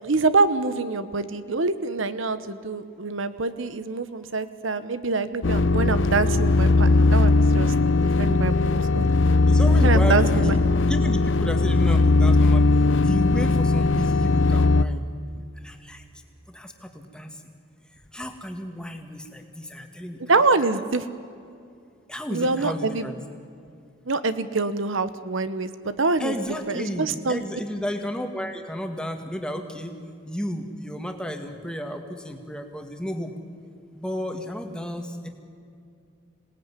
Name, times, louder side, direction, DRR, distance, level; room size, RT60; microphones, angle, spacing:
voice 1, 0.0-7.7 8.2-9.1 9.8-10.6 20.3-21.1 22.3-23.1 24.1-26.3 26.7-27.4, right 3 dB, 70° right, 13 dB, 1.0 m, -25 dB
sound 1, 5.4-14.8, left 3 dB, 65° left, 0.6 m, -19 dB
voice 2, 9.5-10.6 10.9-16.0 16.5-17.4 18.1-20.3 22.1-23.2 26.2-29.9 30.3-33.3 33.9-35.3, equal, 5° left, 4 dB, 1.9 m, -32 dB
26.5 x 18.5 x 9.9 m, 2.4 s
head